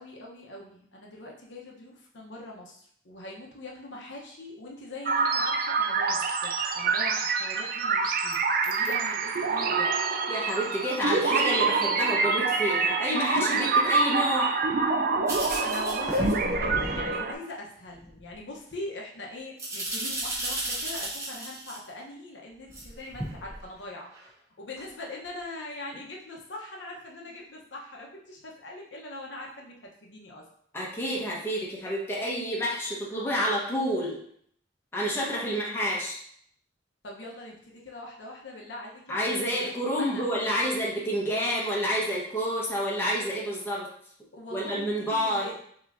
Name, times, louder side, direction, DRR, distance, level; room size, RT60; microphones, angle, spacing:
voice 1, 0.0-10.0 13.5-13.6 15.6-24.1 24.6-30.5 35.5-35.6 37.0-40.3 44.3-45.5, left 2 dB, 75° left, -1 dB, 0.9 m, -42 dB
sound 1, 5.1-17.3, right 4 dB, 50° right, 0.4 m, -26 dB
voice 2, 10.3-14.6 30.7-34.2 34.9-36.2 39.1-43.9 44.5-45.5, equal, 15° left, -5 dB, 1.1 m, -29 dB
sound 2, 15.3-17.2 17.9-18.4 19.6-21.8 22.7-23.6 24.1-24.3 24.8-24.9 25.9-26.0, right 1 dB, 15° right, 1.1 m, -34 dB
6.4 x 3.0 x 2.6 m, 0.65 s
head